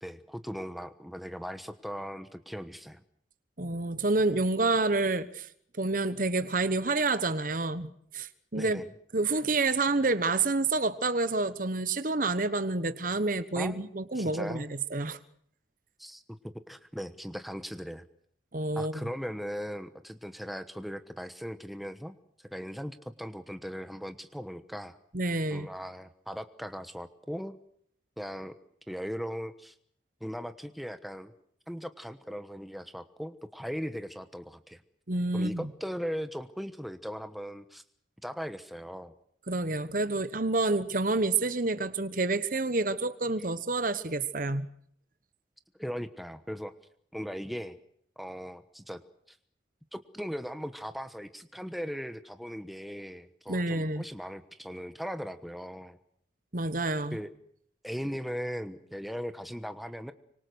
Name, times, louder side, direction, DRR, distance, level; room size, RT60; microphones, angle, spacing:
voice 1, 0.0-3.0 8.5-8.9 13.5-13.9 14.1-14.7 16.0-18.0 18.7-25.0 25.5-27.6 28.2-28.5 28.9-29.7 30.2-31.3 31.7-34.8 35.3-37.8 38.2-39.1 45.8-46.7 47.1-47.8 48.2-49.0 49.3-49.4 49.9-56.0 57.1-57.3 57.8-60.1, equal, ahead, 10 dB, 1.1 m, -38 dB
voice 2, 3.6-5.5 5.8-8.8 9.1-15.2 18.5-18.9 25.1-25.7 35.1-35.7 39.5-44.7 53.5-54.0 56.5-57.2, right 3 dB, 45° right, 12 dB, 1.2 m, -28 dB
25.5 x 25.0 x 6.4 m, 0.65 s
head